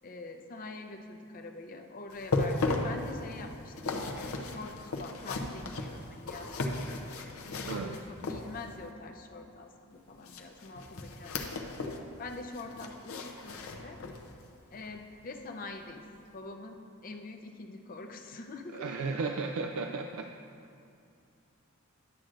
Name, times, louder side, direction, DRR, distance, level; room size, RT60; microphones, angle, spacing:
voice 1, 0.0-6.5 7.1-11.6 12.2-14.0 14.7-16.0 16.3-19.1, left 3 dB, 40° left, 4 dB, 0.5 m, -45 dB
sound 1, 2.1-8.8 10.2-12.1 12.3-14.3 14.7-14.9 15.4-15.5, left 2 dB, 90° left, 0.7 m, -36 dB
voice 2, 7.7-8.0 18.7-20.3, right 4 dB, 85° right, 4 dB, 0.3 m, -34 dB
11.0 x 7.5 x 2.5 m, 2.5 s
head